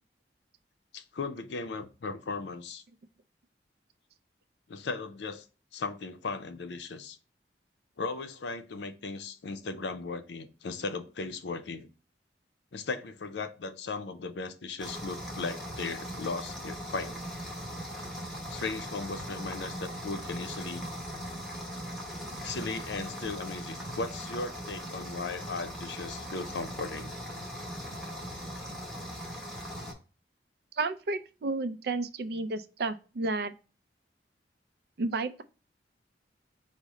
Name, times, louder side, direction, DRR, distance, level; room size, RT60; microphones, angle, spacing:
voice 1, 0.9-2.8 4.7-5.5 5.7-7.2 8.0-11.9 12.7-17.1 18.5-20.8 22.4-27.1, left 3 dB, 80° left, 0.5 m, -37 dB
sound 1, 14.8-29.9, equal, 5° left, 0.8 m, -39 dB
voice 2, 30.8-33.5 35.0-35.4, right 3 dB, 60° right, 0.4 m, -32 dB
4.8 x 2.1 x 4.0 m
head